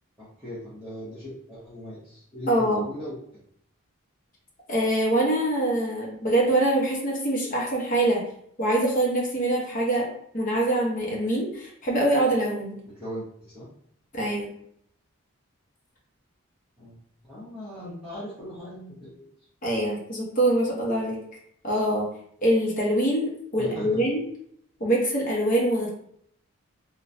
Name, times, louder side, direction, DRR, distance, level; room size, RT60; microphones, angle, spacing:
voice 1, 0.2-3.4 12.9-13.7 16.8-17.0 17.2-19.3 23.6-24.0, left 1 dB, 5° right, -14 dB, 0.8 m, -39 dB
voice 2, 2.5-2.8 4.7-8.2 8.6-10.1 10.3-12.8 14.1-14.5 19.6-21.2 21.6-22.1 22.4-24.2 24.8-25.9, right 1 dB, 40° left, -3 dB, 0.7 m, -24 dB
3.0 x 2.1 x 2.5 m, 0.67 s
head